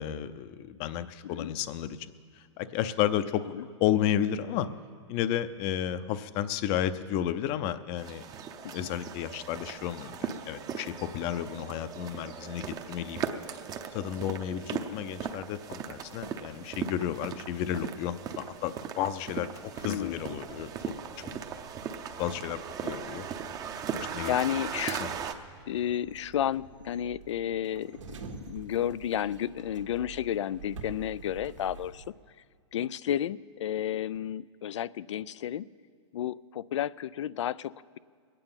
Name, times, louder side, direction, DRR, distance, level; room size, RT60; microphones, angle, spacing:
voice 1, 0.0-2.0 2.6-3.4 3.8-4.7 5.1-8.2 8.7-13.2 13.9-20.7 21.2-21.4 21.8-21.9 22.2-23.2 23.9-24.4 25.0-25.1, left 10 dB, 35° left, 13 dB, 0.6 m, -32 dB
sound 1, 8.0-25.3, right 7 dB, 25° right, 0.7 m, -38 dB
sound 2, 19.7-32.1, right 5 dB, 85° right, 1.6 m, -49 dB
voice 2, 19.8-20.2 24.3-25.1 25.7-32.0 32.7-35.7 36.1-38.0, left 10 dB, 75° left, 20 dB, 0.4 m, -32 dB
21.5 x 9.1 x 5.6 m, 2.1 s
hypercardioid pair, 130°, 15 cm